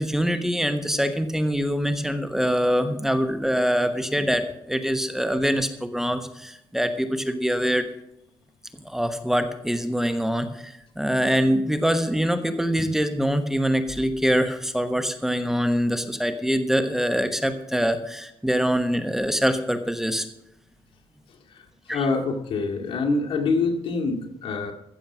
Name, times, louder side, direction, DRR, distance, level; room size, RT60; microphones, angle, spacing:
voice 1, 0.0-7.8 8.8-20.3 21.9-22.1, equal, 5° right, 9 dB, 1.2 m, -24 dB
voice 2, 21.9-24.7, left 3 dB, 75° left, 2 dB, 2.2 m, -25 dB
15.0 x 7.2 x 6.1 m, 0.81 s
cardioid pair, 105°, 9 cm